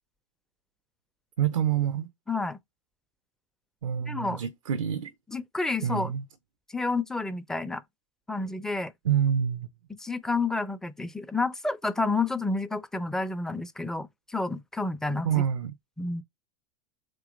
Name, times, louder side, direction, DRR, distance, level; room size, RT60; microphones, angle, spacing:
voice 1, 1.4-2.1 3.8-5.1 5.8-6.2 9.0-9.7 15.2-15.7, right 9 dB, 75° right, 0.5 m, -27 dB
voice 2, 2.3-2.6 4.1-4.4 5.3-6.1 6.7-7.8 8.3-8.9 9.9-15.3 16.0-16.2, left 3 dB, 5° left, 0.5 m, -30 dB
3.8 x 2.8 x 3.7 m
figure-of-eight pair, 90°, 17 cm